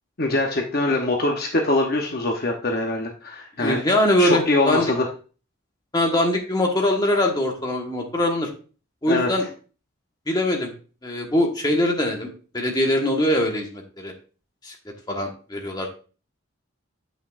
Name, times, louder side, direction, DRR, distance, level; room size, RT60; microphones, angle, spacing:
voice 1, 0.2-3.8 4.2-5.1 9.1-9.3, left 2 dB, 45° left, 2 dB, 0.8 m, -23 dB
voice 2, 3.6-4.9 5.9-8.5 9.0-9.4 10.3-10.7 11.0-12.3 12.5-14.1 14.6-14.7 15.1-15.9, left 1 dB, 20° left, 1 dB, 1.3 m, -22 dB
8.6 x 5.9 x 2.5 m, 0.37 s
head